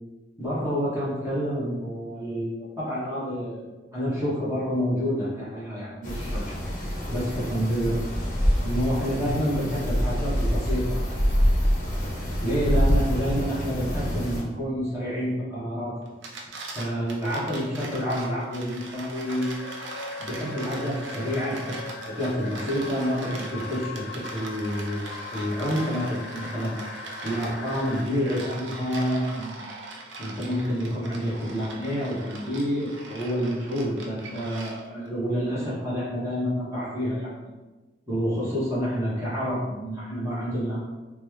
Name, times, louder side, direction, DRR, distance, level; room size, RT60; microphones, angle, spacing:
voice 1, 0.4-3.6 3.9-6.5 7.1-8.0 8.6-11.1 12.4-16.0 16.7-19.5 19.8-19.9 20.2-26.8 27.2-29.6 30.2-37.3 38.1-40.8, equal, 15° right, -10 dB, 1.0 m, -28 dB
sound 1, 6.0-14.4, equal, 45° left, 0.7 m, -26 dB
sound 2, 16.0-35.1, right 2 dB, 90° right, 0.6 m, -41 dB
sound 3, 19.2-28.0, left 4 dB, 85° left, 0.3 m, -40 dB
3.9 x 2.3 x 3.1 m, 1.2 s
head